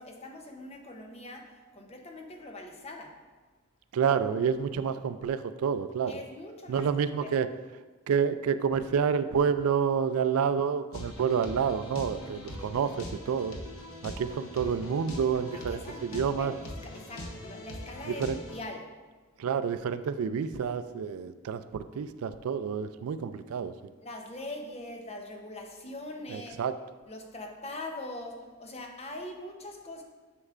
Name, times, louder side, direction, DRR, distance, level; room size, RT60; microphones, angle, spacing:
voice 1, 0.0-3.2 6.1-6.9 7.2-7.3 15.5-16.5 16.8-18.9 24.0-26.6 27.1-30.0, left 2 dB, 30° left, 2 dB, 0.7 m, -42 dB
voice 2, 3.9-6.2 6.7-7.5 8.1-13.5 14.0-16.5 18.2-18.4 19.4-23.7 26.3-26.7, right 7 dB, 85° right, 12 dB, 0.3 m, -29 dB
sound 1, 10.9-18.6, left 1 dB, 70° left, 0.9 m, -42 dB
9.7 x 5.4 x 2.5 m, 1.3 s
head